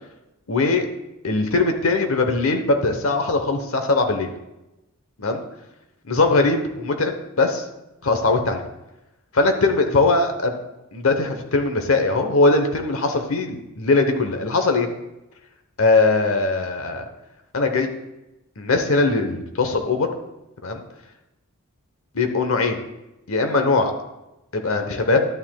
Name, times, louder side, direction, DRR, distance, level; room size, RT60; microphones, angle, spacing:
voice 1, 0.5-0.9 1.2-4.3 5.2-5.4 6.1-7.6 8.0-8.6 9.3-10.6 10.9-14.9 15.8-17.1 17.5-17.9 18.6-20.1 20.6-20.8 22.1-22.8 23.3-23.9 24.5-25.3, left 3 dB, 70° left, 5 dB, 1.0 m, -20 dB
12.0 x 9.0 x 2.3 m, 0.95 s
head